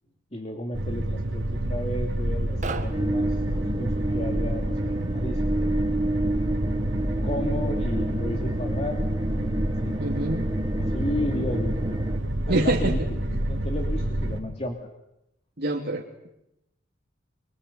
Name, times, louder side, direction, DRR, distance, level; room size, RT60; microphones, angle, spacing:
voice 1, 0.3-6.0 7.2-9.9 10.8-12.0 12.5-14.9, left 1 dB, 30° left, 2 dB, 2.8 m, -34 dB
sound 1, 0.7-14.4, right 1 dB, 75° right, 3.9 m, -28 dB
sound 2, 2.5-4.1, right 3 dB, 40° right, 1.9 m, -36 dB
sound 3, 2.9-12.2, right 1 dB, 20° right, 1.6 m, -30 dB
voice 2, 10.0-10.4 12.5-13.0 15.6-16.3, right 1 dB, 55° right, 0 dB, 2.9 m, -26 dB
27.0 x 25.5 x 8.2 m, 0.85 s
head